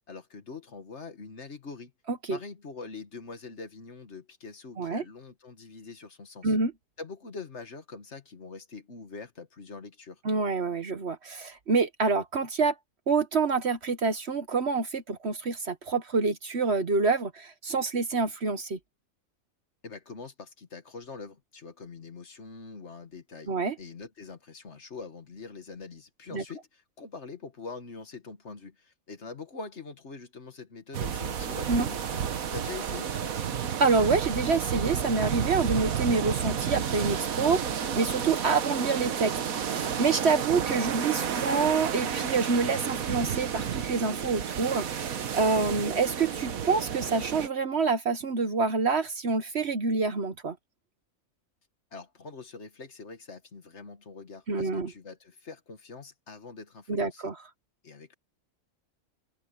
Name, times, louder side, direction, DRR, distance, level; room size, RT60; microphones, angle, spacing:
voice 1, 0.1-1.9 2.3-6.6 7.0-10.2 19.8-32.2 32.5-33.6 51.9-57.3 57.8-58.1, left 4 dB, 55° left, 1.9 m, -44 dB
voice 2, 10.2-12.7 13.1-18.8 23.5-23.7 26.3-26.4 31.7-31.9 33.8-50.6 54.5-54.9 56.9-57.4, right 4 dB, 50° right, 1.3 m, -27 dB
sound 1, 30.9-47.5, right 8 dB, 75° right, 1.5 m, -31 dB
open air
omnidirectional pair, 1.5 m